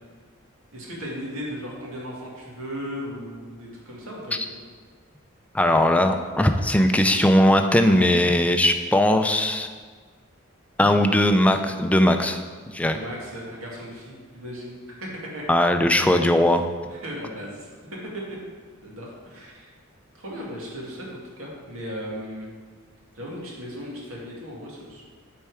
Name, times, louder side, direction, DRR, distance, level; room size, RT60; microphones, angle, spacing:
voice 1, 0.7-4.5 12.9-15.5 16.9-17.7 18.1-18.4 18.8-19.7 20.1-22.5 23.1-25.0, equal, 85° right, -3 dB, 2.1 m, -36 dB
voice 2, 5.5-9.7 10.8-12.4 12.7-13.0 15.5-16.6, left 1 dB, 5° left, 6 dB, 0.4 m, -19 dB
8.9 x 4.3 x 4.8 m, 1.5 s
head